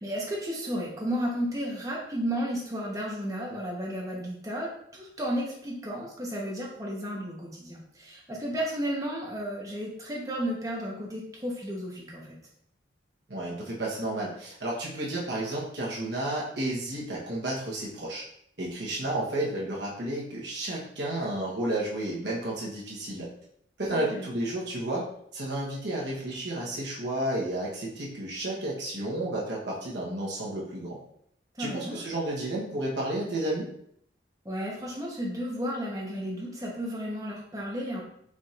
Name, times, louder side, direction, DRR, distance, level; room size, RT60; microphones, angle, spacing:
voice 1, 0.0-12.4 23.9-24.3 31.5-32.1 34.4-38.0, equal, 20° right, -3 dB, 0.9 m, -33 dB
voice 2, 13.3-18.2 18.6-23.3 23.8-25.1 25.3-31.0 31.6-33.7, right 1 dB, 65° right, -5 dB, 1.1 m, -32 dB
4.9 x 4.2 x 2.5 m, 0.70 s
head